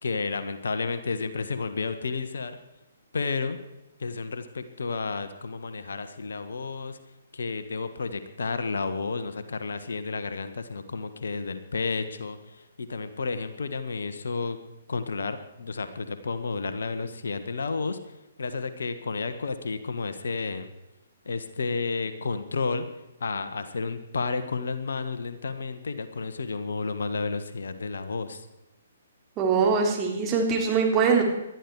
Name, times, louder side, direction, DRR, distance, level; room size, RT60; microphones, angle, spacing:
voice 1, 0.0-2.6 3.1-3.6 4.0-7.0 7.3-14.6 14.9-18.0 18.4-20.7 21.2-22.9 23.2-28.5, left 4 dB, 70° left, 10 dB, 1.4 m, -31 dB
voice 2, 29.4-31.2, right 5 dB, 25° right, 0 dB, 3.6 m, -22 dB
20.0 x 12.5 x 4.8 m, 0.95 s
figure-of-eight pair, 130°, 0 cm